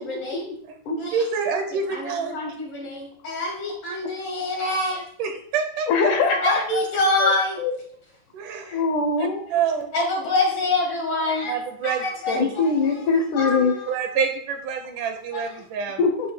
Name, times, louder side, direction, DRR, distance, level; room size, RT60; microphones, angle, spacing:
voice 1, 0.0-0.4 1.0-1.2 1.9-5.0 6.3-7.6 8.7-8.8 9.9-11.5 11.8-12.8 13.3-13.9 15.3-15.4, left 2 dB, 55° left, 0 dB, 1.9 m, -26 dB
voice 2, 1.1-2.4 5.2-6.1 8.3-8.8 9.2-9.9 11.4-12.1 12.3-12.5 13.9-16.1, right 6 dB, 75° right, 6 dB, 2.1 m, -27 dB
voice 3, 5.9-6.8 7.2-7.3 7.6-7.7 8.7-9.4 12.3-13.8 16.0-16.3, left 4 dB, 75° left, 5 dB, 2.1 m, -22 dB
8.8 x 8.1 x 2.2 m, 0.63 s
omnidirectional pair, 3.9 m